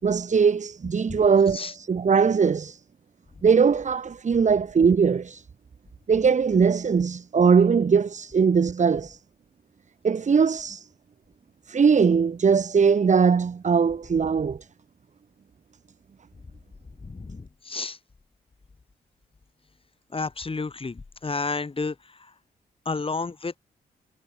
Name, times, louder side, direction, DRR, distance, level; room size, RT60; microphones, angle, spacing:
voice 1, 0.0-2.8 3.4-5.4 6.1-9.2 10.0-10.9 11.7-14.7, right 6 dB, 45° right, 1.4 m, -20 dB
voice 2, 17.0-18.0 20.1-22.3 22.9-23.6, left 4 dB, 35° left, 3.6 m, -31 dB
cardioid pair, 75°, 17 cm